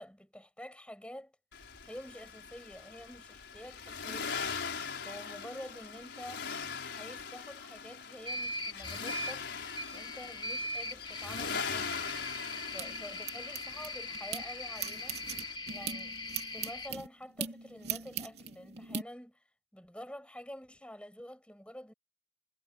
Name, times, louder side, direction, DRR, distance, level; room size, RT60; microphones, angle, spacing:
voice 1, 0.0-1.4 1.8-4.6 5.0-6.5 6.9-9.5 9.9-12.1 12.7-15.2 15.7-16.2 16.5-19.4 19.7-21.9, equal, 5° left, 5.5 m, -48 dB
Accelerating revving vroom, 1.5-15.6, left 5 dB, 90° left, 4.8 m, -41 dB
sound 1, 8.3-16.9, left 1 dB, 25° left, 2.0 m, -41 dB
sound 2, 12.1-14.4 14.8-19.0, right 7 dB, 70° right, 3.3 m, -40 dB
head